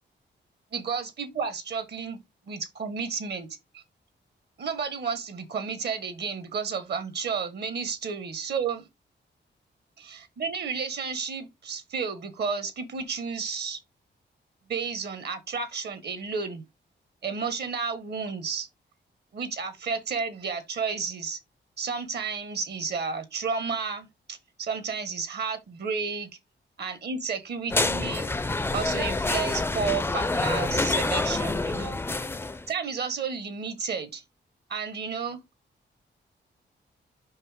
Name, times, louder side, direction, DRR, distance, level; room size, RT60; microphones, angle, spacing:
voice 1, 0.7-2.2 2.5-3.5 3.7-3.8 4.6-8.9 10.0-13.8 14.7-16.6 17.2-18.7 19.3-21.4 21.8-26.3 26.8-28.4 28.7-32.0 32.7-34.2 34.7-35.4, right 5 dB, 60° right, 1.4 m, -32 dB
sound 1, 27.7-32.7, left 3 dB, 10° left, 0.4 m, -27 dB
5.6 x 5.4 x 3.6 m
wide cardioid pair, 165°, 19 cm